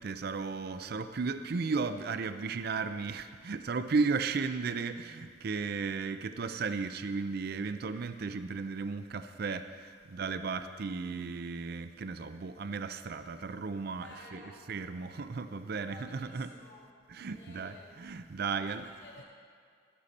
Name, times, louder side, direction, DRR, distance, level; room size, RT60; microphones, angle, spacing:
voice 1, 0.0-14.4 14.7-16.5 17.1-18.8, right 4 dB, 60° right, 10 dB, 0.5 m, -35 dB
voice 2, 14.0-14.7 15.9-16.9 17.2-17.9 18.4-19.2, left 2 dB, 70° left, -6 dB, 3.3 m, -53 dB
12.0 x 11.5 x 4.2 m, 2.2 s
head